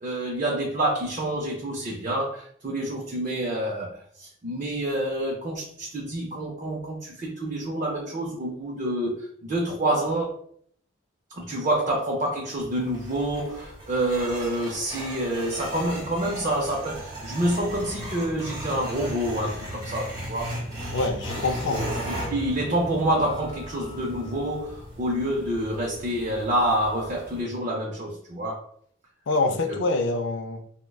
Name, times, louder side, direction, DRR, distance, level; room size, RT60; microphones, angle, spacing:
voice 1, 0.0-10.3 11.3-20.6 21.7-28.6 29.4-29.8, right 1 dB, 35° right, -2 dB, 0.5 m, -28 dB
sound 1, 12.6-27.4, equal, 20° right, 0.9 m, -37 dB
voice 2, 20.9-21.9 29.3-30.6, left 3 dB, 60° left, 7 dB, 0.4 m, -25 dB
4.4 x 2.1 x 2.3 m, 0.63 s
head